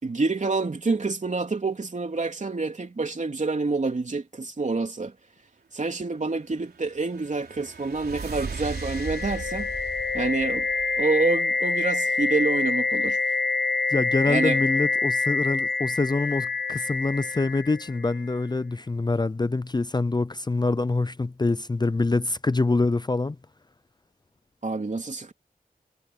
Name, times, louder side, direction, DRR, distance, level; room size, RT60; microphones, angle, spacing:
voice 1, 0.0-5.1 5.7-9.7 10.1-10.7 11.0-13.2 14.3-14.6 24.6-25.3, right 3 dB, 50° right, 3.4 m, -27 dB
sound 1, 6.4-11.4, right 5 dB, 90° right, 3.9 m, -38 dB
sound 2, 8.4-18.2, left 3 dB, 80° left, 1.3 m, -27 dB
voice 2, 13.9-23.4, left 3 dB, 25° left, 0.5 m, -25 dB
wide cardioid pair, 75°, 16 cm